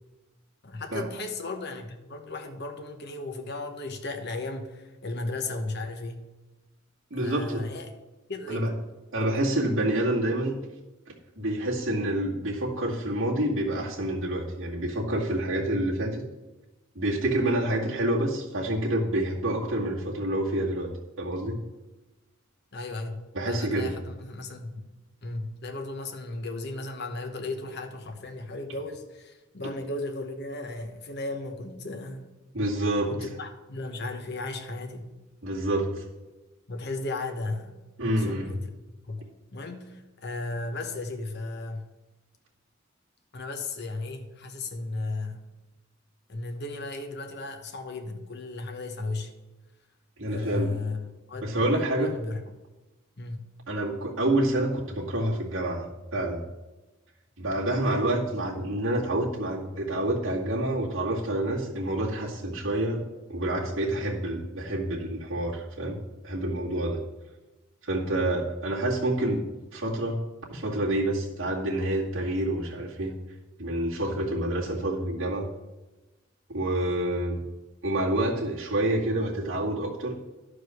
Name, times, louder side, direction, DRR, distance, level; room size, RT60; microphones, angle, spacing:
voice 1, 0.6-6.3 7.1-7.9 8.3-8.9 22.7-24.8 25.2-32.3 33.1-35.1 36.7-37.8 38.2-38.7 39.0-41.9 43.3-45.5 46.3-49.3 50.3-52.4 53.2-53.6 58.7-58.8, left 2 dB, 55° left, 5 dB, 1.2 m, -35 dB
voice 2, 7.1-7.6 8.5-8.7 9.1-10.6 11.1-16.2 16.9-20.9 21.2-21.6 23.3-23.9 32.5-33.1 35.4-36.0 38.0-38.5 50.2-50.7 51.4-52.1 53.7-56.4 57.4-63.0 63.3-67.0 67.8-69.4 69.7-70.2 70.5-73.1 73.6-75.5 76.5-77.4 77.8-80.2, right 1 dB, 70° right, -5 dB, 2.2 m, -28 dB
11.5 x 5.0 x 6.3 m, 1.1 s
head